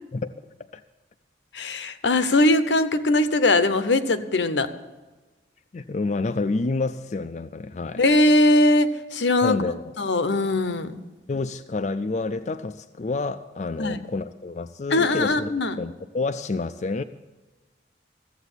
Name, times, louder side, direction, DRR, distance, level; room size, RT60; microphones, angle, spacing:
voice 1, 1.5-4.7 8.0-9.6 10.0-11.0 13.8-14.0 14.9-15.8, left 2 dB, 80° left, 11 dB, 0.9 m, -20 dB
voice 2, 5.7-8.0 9.4-9.9 11.3-17.0, left 3 dB, 40° left, 8 dB, 0.4 m, -28 dB
14.5 x 8.0 x 8.2 m, 1.2 s
head